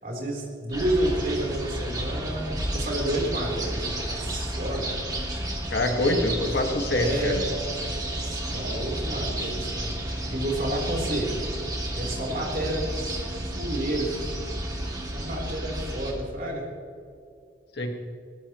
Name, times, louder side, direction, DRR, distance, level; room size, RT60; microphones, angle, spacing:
voice 1, 0.0-5.0 6.9-7.6 8.2-11.6 11.9-13.1 13.6-14.3 15.1-16.7, right 1 dB, 50° right, -1 dB, 3.9 m, -30 dB
sound 1, 0.7-16.1, right 1 dB, 20° right, 2.3 m, -31 dB
voice 2, 5.7-7.4 17.8-17.9, left 1 dB, 65° left, 3 dB, 1.8 m, -25 dB
20.5 x 18.0 x 3.1 m, 2.4 s
head